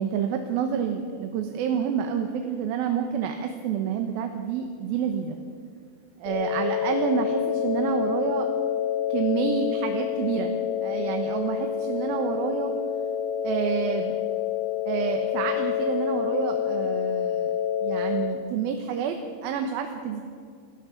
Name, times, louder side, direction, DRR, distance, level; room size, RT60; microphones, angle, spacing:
voice 1, 0.0-5.4 6.2-8.5 9.1-12.7 13.4-14.1 14.9-17.5 17.8-20.2, right 7 dB, 80° right, 5 dB, 2.9 m, -28 dB
sound 1, 6.3-18.3, left 10 dB, 80° left, 6.5 m, -28 dB
27.0 x 14.0 x 7.2 m, 2.2 s
omnidirectional pair, 4.2 m